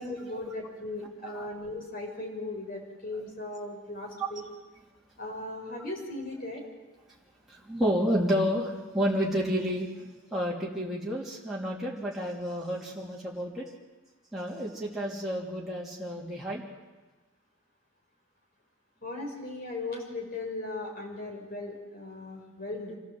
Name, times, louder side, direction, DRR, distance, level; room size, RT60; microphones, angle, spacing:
voice 1, 0.0-4.4 5.2-6.6 19.0-23.0, left 2 dB, 40° left, 0 dB, 5.4 m, -37 dB
voice 2, 7.5-9.9 10.3-13.7 14.3-16.6, equal, ahead, -6 dB, 3.1 m, -30 dB
26.5 x 15.5 x 8.0 m, 1.2 s
head